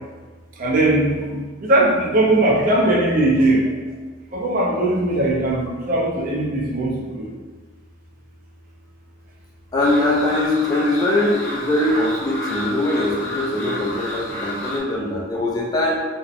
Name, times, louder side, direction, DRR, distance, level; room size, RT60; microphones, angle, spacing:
voice 1, 0.6-3.7 4.3-7.3, right 1 dB, 45° right, -3 dB, 0.5 m, -19 dB
voice 2, 9.7-16.0, left 1 dB, 20° left, -4 dB, 0.3 m, -21 dB
sound 1, 9.8-14.8, left 1 dB, 70° left, 0.6 m, -31 dB
2.7 x 2.0 x 2.4 m, 1.4 s
head